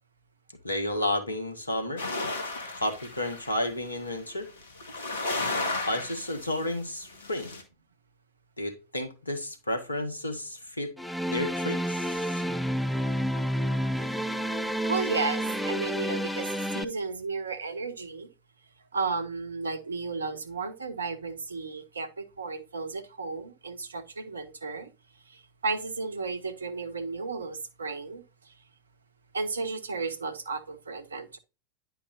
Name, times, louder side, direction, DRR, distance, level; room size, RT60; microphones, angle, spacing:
voice 1, 0.6-2.0 2.7-4.5 5.5-7.5 8.6-10.9 11.3-12.4, left 1 dB, 80° left, 1.5 m, -32 dB
sound 1, 2.0-4.2 4.6-6.7 7.1-7.6, left 2 dB, 65° left, 1.9 m, -34 dB
sound 2, 11.0-16.8, equal, ahead, 0.5 m, -29 dB
voice 2, 14.9-18.3 18.9-24.9 25.3-28.5 29.3-31.4, right 4 dB, 75° right, 0.9 m, -33 dB
10.0 x 5.6 x 2.6 m
figure-of-eight pair, 90°, 0 cm